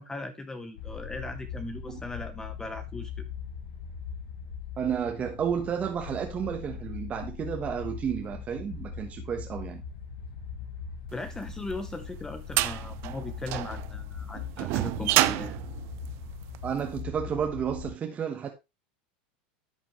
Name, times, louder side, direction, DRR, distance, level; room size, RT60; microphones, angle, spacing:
voice 1, 0.0-3.2 11.1-15.6, left 2 dB, 10° left, 0.9 m, -38 dB
sound 1, 0.8-17.9, left 6 dB, 75° left, 1.5 m, -40 dB
voice 2, 4.8-9.8 16.6-18.5, right 7 dB, 30° right, 1.1 m, -31 dB
sound 2, 11.5-16.8, right 17 dB, 50° right, 0.5 m, -29 dB
11.0 x 6.1 x 3.1 m
supercardioid pair, 120°, 5 cm